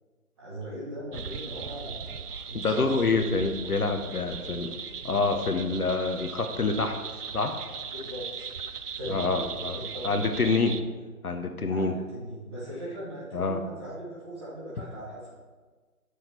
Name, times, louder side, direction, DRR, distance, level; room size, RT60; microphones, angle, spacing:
voice 1, 0.4-2.2 2.5-2.8 7.9-8.5 8.9-9.4 9.7-10.3 11.7-15.3, equal, 15° right, -7 dB, 1.6 m, -39 dB
sound 1, 1.1-10.8, right 6 dB, 90° right, 0.7 m, -38 dB
voice 2, 2.5-4.7 5.0-7.0 7.3-7.5 9.1-9.8 10.0-10.7 11.2-11.9 13.3-13.6, left 3 dB, 75° left, 6 dB, 1.0 m, -26 dB
7.2 x 6.4 x 4.4 m, 1.4 s
figure-of-eight pair, 155°, 45 cm